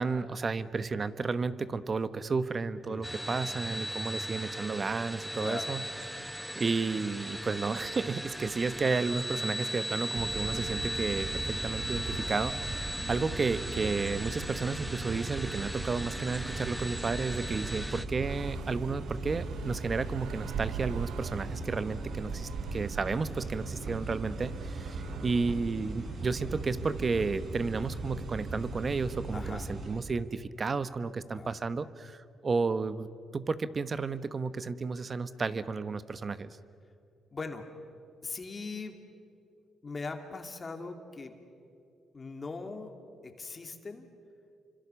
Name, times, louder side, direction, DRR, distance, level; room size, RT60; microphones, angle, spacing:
voice 1, 0.0-5.8 6.1-36.6, right 4 dB, 35° right, 13 dB, 1.1 m, -32 dB
voice 2, 2.9-3.3 5.4-5.8 25.0-25.3 29.3-29.7 31.3-31.7 37.3-37.7 38.2-39.1 39.8-41.3 42.1-44.1, left 4 dB, 30° left, 5 dB, 2.7 m, -41 dB
sound 1, 3.0-18.1, equal, 5° right, 1.0 m, -37 dB
sound 2, 10.1-30.0, right 3 dB, 50° right, 4.5 m, -39 dB
Far Away Leaf Blower, 18.2-29.2, right 10 dB, 80° right, 0.6 m, -45 dB
29.5 x 25.5 x 7.1 m, 2.6 s
cardioid pair, 90°, 0 cm